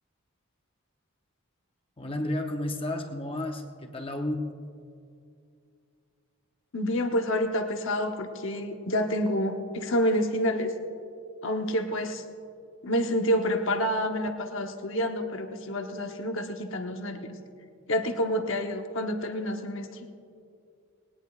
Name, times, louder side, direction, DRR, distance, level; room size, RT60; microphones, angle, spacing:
voice 1, 2.0-4.6, left 1 dB, 25° left, 4 dB, 0.7 m, -32 dB
voice 2, 6.7-10.7 11.4-12.2 12.8-17.3 17.9-19.9, equal, 55° left, 5 dB, 0.9 m, -28 dB
19.5 x 19.0 x 2.4 m, 2.5 s
head